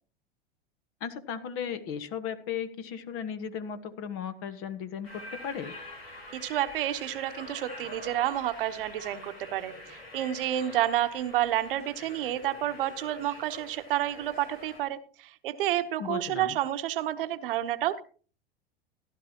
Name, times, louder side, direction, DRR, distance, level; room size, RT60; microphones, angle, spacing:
voice 1, 1.0-5.7 16.0-16.6, left 7 dB, 45° left, 11 dB, 1.4 m, -36 dB
sound 1, 5.0-14.8, left 1 dB, 85° left, 4.4 m, -46 dB
voice 2, 6.3-18.0, right 13 dB, 65° right, 10 dB, 1.0 m, -30 dB
15.0 x 11.5 x 2.9 m, 0.40 s
hypercardioid pair, 90°, 29 cm